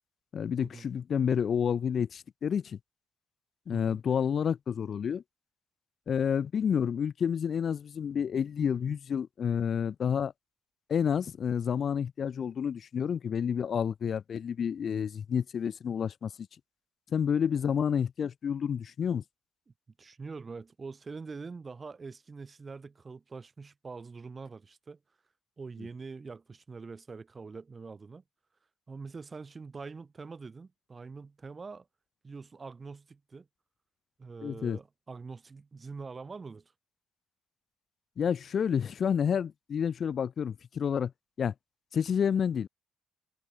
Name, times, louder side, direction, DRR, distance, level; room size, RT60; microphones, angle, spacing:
voice 1, 0.3-2.8 3.7-5.2 6.1-10.3 10.9-16.3 17.1-19.2 34.4-34.8 38.2-41.1 41.4-41.5 41.9-42.7, left 7 dB, 55° left, 0.3 m, -29 dB
voice 2, 20.0-25.0 25.6-28.2 28.9-31.9 32.2-33.5 34.2-36.7, right 4 dB, 30° right, 2.6 m, -44 dB
cardioid pair, 90°, 0 cm